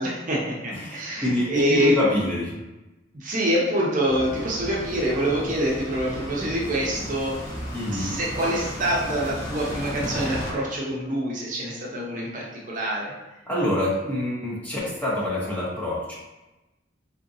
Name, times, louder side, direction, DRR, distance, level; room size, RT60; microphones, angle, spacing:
voice 1, 0.0-1.9 3.1-7.4 7.9-13.1, equal, 45° right, -4 dB, 0.6 m, -26 dB
voice 2, 0.7-2.6 7.7-8.1 13.5-16.1, left 1 dB, 10° left, -6 dB, 0.8 m, -26 dB
sound 1, 4.0-10.5, equal, 40° left, 1.1 m, -34 dB
3.8 x 2.5 x 2.6 m, 1.0 s
head